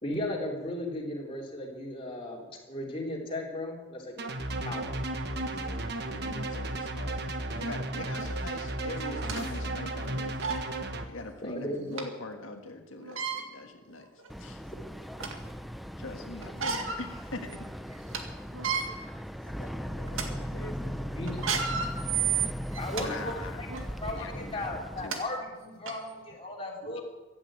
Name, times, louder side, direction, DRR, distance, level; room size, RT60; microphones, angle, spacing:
voice 1, 0.0-4.2 4.6-4.8 11.4-12.0 20.8-21.5 22.8-23.7 24.0-27.0, left 1 dB, 25° left, 3.5 m, -36 dB
sound 1, 4.2-11.1, right 2 dB, 55° right, 1.3 m, -34 dB
voice 2, 6.1-7.3 7.6-10.4 11.1-14.1 14.4-14.6 16.0-17.7 22.9-23.6 24.1-25.2 26.8-27.0, left 2 dB, 85° left, 1.6 m, -42 dB
sound 2, 8.2-8.3 9.0-9.4 10.0-10.1 10.4-10.6 12.0-12.1 13.0-13.4 14.2-14.3 14.8-15.5 16.4-17.0 17.5-17.6 17.9-18.2 18.5-18.8 19.5-19.7 20.1-20.3 21.3-23.1 23.7-23.9 24.7-24.8 25.1-25.2 25.9-26.0, right 7 dB, 90° right, 2.1 m, -31 dB
voice 3, 9.0-9.6 19.6-21.0, left 2 dB, 55° left, 0.9 m, -47 dB
Boat Water vehicle, 14.3-25.1, equal, ahead, 0.5 m, -38 dB
15.0 x 10.5 x 8.9 m
head